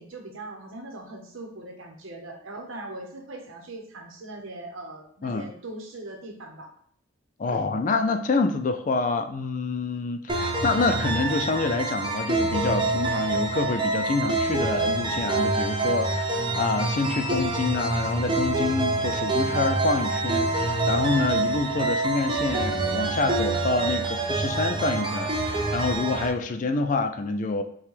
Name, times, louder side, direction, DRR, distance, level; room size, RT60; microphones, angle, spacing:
voice 1, 0.0-6.7 7.5-7.6, right 2 dB, 90° right, 2 dB, 0.9 m, -40 dB
voice 2, 7.4-27.6, left 3 dB, 40° left, 7 dB, 0.3 m, -27 dB
sound 1, 10.3-26.3, right 3 dB, 25° right, 0.5 m, -26 dB
5.8 x 2.3 x 3.2 m, 0.64 s
head